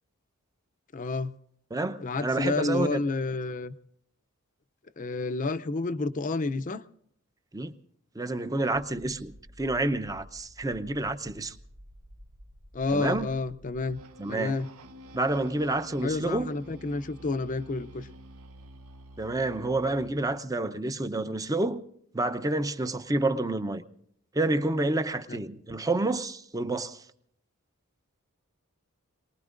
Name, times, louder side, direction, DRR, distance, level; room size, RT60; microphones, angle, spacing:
voice 1, 0.9-1.4 2.0-3.7 5.0-6.8 12.7-14.0 14.3-14.7 16.0-18.1 25.3-25.4, left 3 dB, 35° left, 0.5 m, -30 dB
voice 2, 1.7-3.0 7.5-7.7 8.2-11.6 12.9-13.3 14.2-14.5 15.1-16.5 19.2-21.8 22.1-23.8 24.3-27.0, right 2 dB, 15° right, 0.6 m, -29 dB
sound 1, 8.7-13.8, equal, 60° right, 2.3 m, -51 dB
sound 2, 13.9-20.4, equal, 80° right, 0.9 m, -49 dB
26.5 x 19.5 x 2.5 m
head